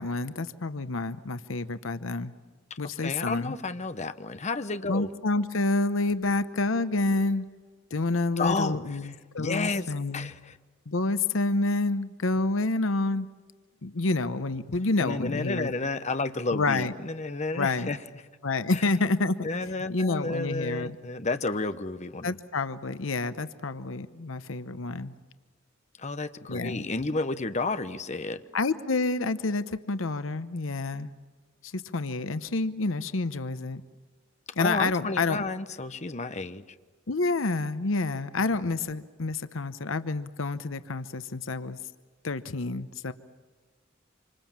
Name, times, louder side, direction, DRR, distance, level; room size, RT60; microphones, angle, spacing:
voice 1, 0.0-2.3 2.8-3.6 4.9-7.5 7.9-10.3 10.9-13.3 13.8-15.7 16.5-16.9 17.5-17.9 18.4-21.0 22.2-25.1 26.5-26.8 28.5-31.1 31.6-33.8 34.6-35.4 37.1-41.8 42.2-43.1, left 3 dB, 85° left, 12 dB, 0.9 m, -28 dB
voice 2, 2.8-5.1 8.4-9.1 9.4-10.6 15.0-18.0 18.7-18.8 19.4-22.3 26.0-28.4 34.6-36.7, left 3 dB, 35° left, 10 dB, 1.0 m, -31 dB
26.5 x 26.0 x 7.4 m, 1.4 s
head